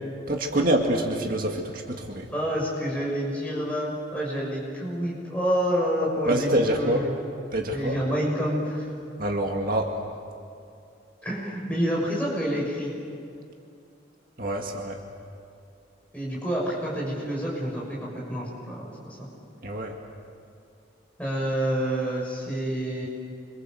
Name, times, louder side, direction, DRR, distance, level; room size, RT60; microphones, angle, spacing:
voice 1, 0.3-2.3 6.3-7.1 7.5-8.0 9.2-10.0 14.4-15.0 19.6-19.9, right 1 dB, 45° right, 1 dB, 2.1 m, -26 dB
voice 2, 2.3-7.1 7.7-8.9 11.2-12.9 16.1-19.3 21.2-23.1, equal, 5° left, -5 dB, 6.6 m, -28 dB
29.5 x 26.0 x 7.8 m, 2.5 s
head